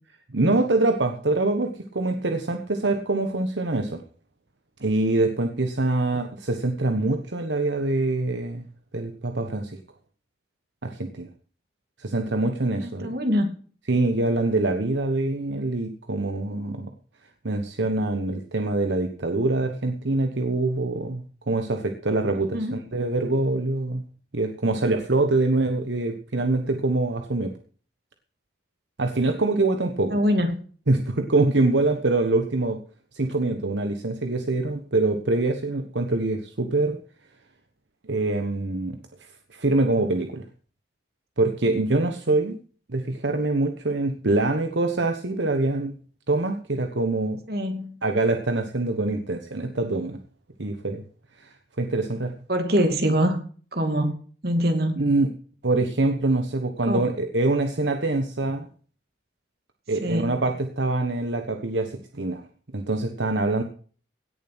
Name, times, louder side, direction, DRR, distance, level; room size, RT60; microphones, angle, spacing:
voice 1, 0.3-4.0 4.8-8.7 8.9-9.8 10.8-11.3 12.0-13.1 13.9-16.9 17.4-24.0 24.3-27.5 29.0-30.2 30.9-32.8 33.1-37.0 38.1-39.0 39.5-40.5 41.4-42.6 42.9-46.0 46.3-47.4 48.0-50.2 50.6-51.0 51.4-51.5 51.8-52.3 55.0-55.3 55.6-58.7 59.9-62.4 62.7-63.6, right 2 dB, 70° right, 6 dB, 1.2 m, -24 dB
voice 2, 12.8-13.6 22.5-22.8 30.1-30.6 47.5-48.0 52.5-53.4 53.7-54.1 54.4-55.0 56.8-57.0 60.0-60.4, equal, 55° right, 6 dB, 2.5 m, -24 dB
17.0 x 7.2 x 6.1 m, 0.42 s
head